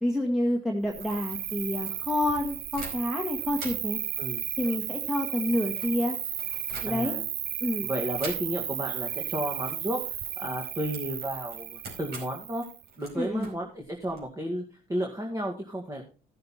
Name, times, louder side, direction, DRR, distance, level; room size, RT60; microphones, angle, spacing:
voice 1, 0.0-4.0 4.6-6.2 6.8-7.2 7.6-7.9 13.1-13.5, left 1 dB, ahead, 0 dB, 1.6 m, -28 dB
sound 1, 0.8-3.2 3.5-7.3 8.2-8.8 9.1-9.3 9.6-14.2, right 2 dB, 70° right, 4.9 m, -46 dB
Cricket, 0.9-12.8, right 11 dB, 55° right, 0.6 m, -34 dB
voice 2, 6.9-7.2 7.8-12.6 13.0-14.6 14.9-16.0, right 1 dB, 20° right, 1 dB, 1.9 m, -33 dB
15.0 x 6.7 x 4.2 m, 0.36 s
cardioid pair, 110°, 17 cm